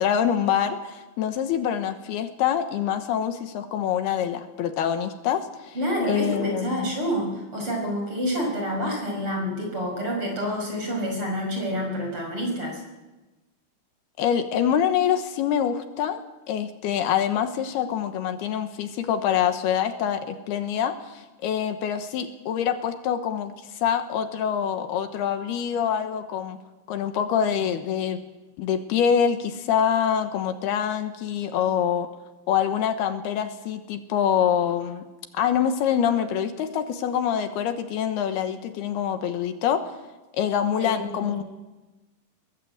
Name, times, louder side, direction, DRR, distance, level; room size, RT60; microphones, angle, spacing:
voice 1, 0.0-5.8 6.1-6.9 14.2-16.2 16.5-26.6 26.9-28.2 28.6-32.1 32.5-35.0 35.3-39.8 40.4-41.4, left 8 dB, 80° left, 8 dB, 3.1 m, -25 dB
voice 2, 5.7-12.8 40.8-41.3, equal, 30° right, 2 dB, 6.3 m, -28 dB
23.0 x 18.0 x 7.8 m, 1.1 s
omnidirectional pair, 4.7 m